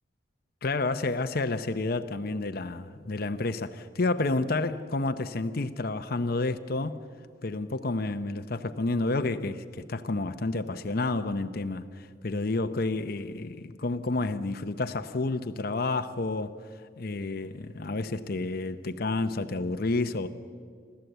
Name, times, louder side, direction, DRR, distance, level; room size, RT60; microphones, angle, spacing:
voice 1, 0.6-7.0 7.4-16.6 17.0-20.3, left 2 dB, 55° left, 0.8 m, -30 dB
28.0 x 13.0 x 8.1 m
head